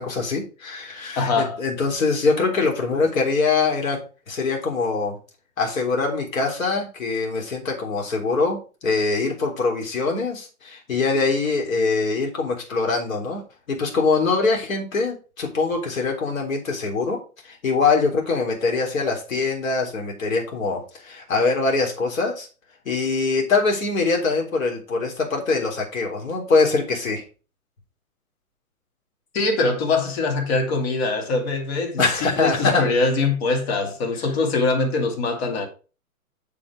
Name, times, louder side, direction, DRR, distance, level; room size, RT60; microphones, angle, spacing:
voice 1, 0.0-4.0 4.3-5.2 5.6-13.4 13.7-22.5 22.9-27.2 32.0-32.9, left 4 dB, 65° left, 3.5 m, -23 dB
voice 2, 1.2-1.6 29.3-35.7, left 3 dB, 45° left, 2.4 m, -23 dB
6.9 x 5.3 x 4.8 m
hypercardioid pair, 130°, 44 cm